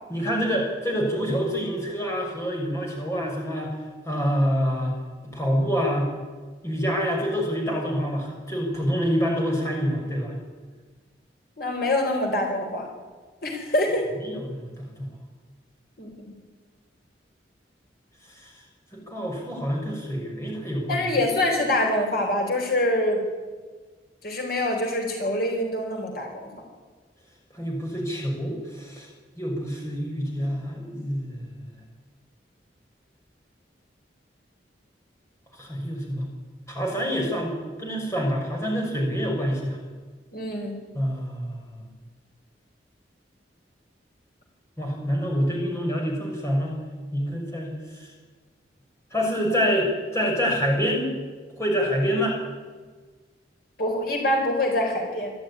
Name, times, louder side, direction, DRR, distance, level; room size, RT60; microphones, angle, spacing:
voice 1, 0.1-3.7 4.0-5.0 5.2-6.1 6.6-10.3 14.1-15.1 18.3-18.5 18.9-21.1 27.5-29.1 29.4-31.5 35.5-36.3 36.7-39.8 40.9-41.9 44.8-46.7 47.1-47.7 48.0-48.1 49.1-51.1 51.6-52.4, equal, 15° left, -1 dB, 6.0 m, -26 dB
voice 2, 11.6-12.9 13.4-14.1 16.0-16.1 20.9-23.2 24.2-26.5 40.3-40.8 53.8-55.3, left 1 dB, 55° left, 2 dB, 4.3 m, -25 dB
25.5 x 13.5 x 9.9 m, 1.4 s
head